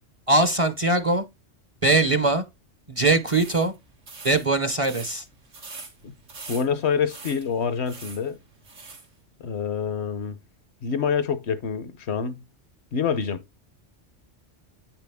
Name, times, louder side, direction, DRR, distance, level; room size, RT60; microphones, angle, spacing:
voice 1, 0.3-1.2 1.8-2.4 3.0-3.7 4.2-5.2, right 2 dB, 30° right, 0.8 m, -21 dB
sound 1, 3.2-9.1, right 3 dB, 90° right, 2.4 m, -44 dB
voice 2, 6.5-8.4 9.4-10.4 10.8-12.4 12.9-13.4, left 6 dB, 65° left, 1.0 m, -26 dB
8.8 x 6.0 x 3.4 m
omnidirectional pair, 1.2 m